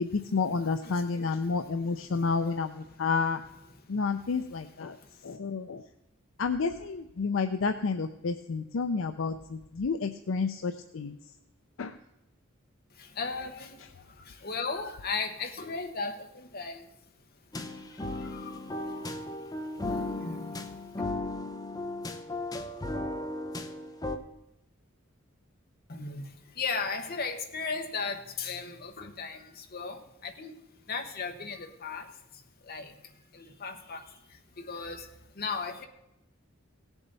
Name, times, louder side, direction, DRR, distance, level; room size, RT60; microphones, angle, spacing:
voice 1, 0.0-3.4 3.9-5.0 5.2-5.8 6.4-11.2 11.8-12.0, left 4 dB, 70° left, 0.5 m, -30 dB
voice 2, 13.2-13.8 14.3-16.8 18.2-18.6 18.9-19.0 19.8-20.5 25.9-26.2 26.6-30.6 30.9-32.1 32.7-32.9 33.3-34.1 34.6-35.1 35.4-35.9, left 4 dB, 50° left, 1.2 m, -36 dB
sound 1, 17.5-24.2, left 2 dB, 20° left, 0.8 m, -36 dB
17.5 x 7.1 x 4.1 m
head